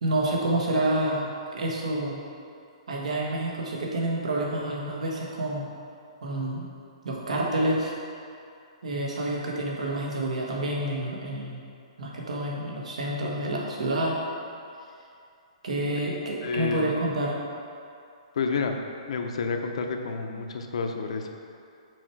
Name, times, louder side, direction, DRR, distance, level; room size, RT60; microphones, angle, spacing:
voice 1, 0.0-1.2 1.5-2.2 2.9-5.7 6.2-6.6 7.0-7.9 8.8-11.6 12.0-14.2 15.6-17.4, right 1 dB, 85° right, -2 dB, 1.5 m, -28 dB
voice 2, 16.4-16.9 18.4-18.7 19.1-21.3, left 5 dB, 60° left, 4 dB, 0.6 m, -29 dB
6.3 x 4.8 x 4.6 m, 2.5 s
hypercardioid pair, 175°, 4 cm